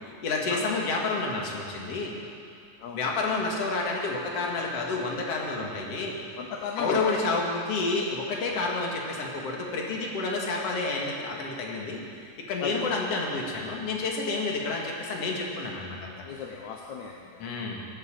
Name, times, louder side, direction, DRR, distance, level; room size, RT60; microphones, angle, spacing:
voice 1, 0.2-2.1 2.9-6.2 6.8-12.0 12.5-16.1 17.4-17.8, left 3 dB, 50° left, -1 dB, 2.5 m, -29 dB
voice 2, 6.4-7.2 12.6-12.9 16.2-17.8, left 6 dB, 70° left, 0 dB, 1.9 m, -36 dB
17.5 x 8.4 x 7.6 m, 2.4 s
omnidirectional pair, 4.1 m